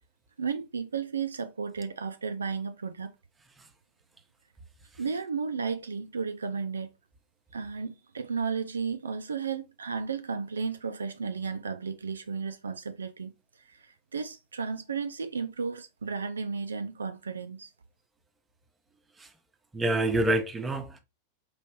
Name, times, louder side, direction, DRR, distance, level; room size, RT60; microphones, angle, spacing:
voice 1, 0.4-3.1 5.0-6.9 7.5-17.7, right 5 dB, 70° right, 0.3 m, -34 dB
voice 2, 19.7-21.0, right 1 dB, 10° right, 0.8 m, -27 dB
4.7 x 3.1 x 2.9 m
figure-of-eight pair, 90°, 0 cm